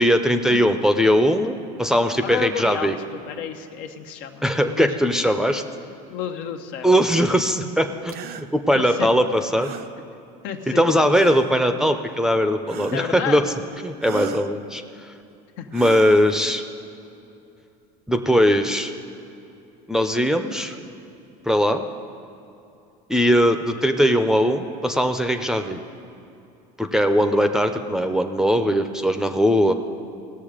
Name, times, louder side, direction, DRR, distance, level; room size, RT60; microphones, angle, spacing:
voice 1, 0.0-3.0 4.4-5.6 6.8-9.7 10.7-13.4 13.8-14.8 15.7-16.6 18.1-18.9 19.9-20.8 21.4-21.9 23.1-25.8 26.8-29.7, equal, 5° right, 5 dB, 0.6 m, -20 dB
voice 2, 2.2-2.9 3.3-5.0 5.2-5.4 6.1-7.0 8.7-9.1 10.4-10.8 12.9-13.5 15.6-15.8, left 8 dB, 70° left, 5 dB, 1.0 m, -31 dB
sound 1, 8.1-8.5 9.6-9.9 11.1-11.6 12.7-13.2 14.0-14.5 15.7-16.4, right 9 dB, 50° right, 0.6 m, -36 dB
17.5 x 6.8 x 5.0 m, 2.7 s
supercardioid pair, 105°, 20 cm